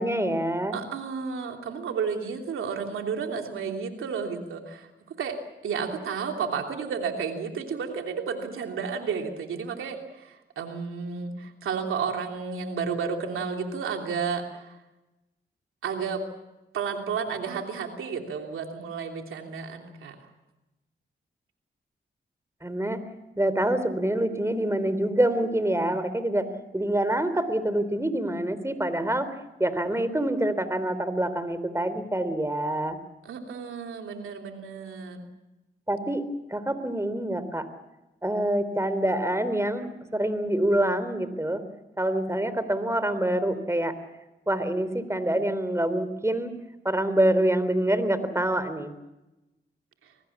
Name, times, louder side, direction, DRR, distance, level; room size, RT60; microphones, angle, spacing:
voice 1, 0.0-0.8 22.6-23.0 23.4-26.5 26.7-29.3 29.6-33.0 35.9-36.2 36.5-37.7 38.2-41.6 42.0-43.9 44.5-46.5 46.8-48.9, right 1 dB, 15° right, 12 dB, 3.5 m, -26 dB
voice 2, 0.7-4.9 5.2-5.4 5.6-14.8 15.8-16.2 16.7-20.2 33.2-35.2 50.0-50.1, right 6 dB, 90° right, 3 dB, 3.1 m, -32 dB
25.5 x 19.5 x 7.2 m, 1.0 s
cardioid pair, 50°, 20 cm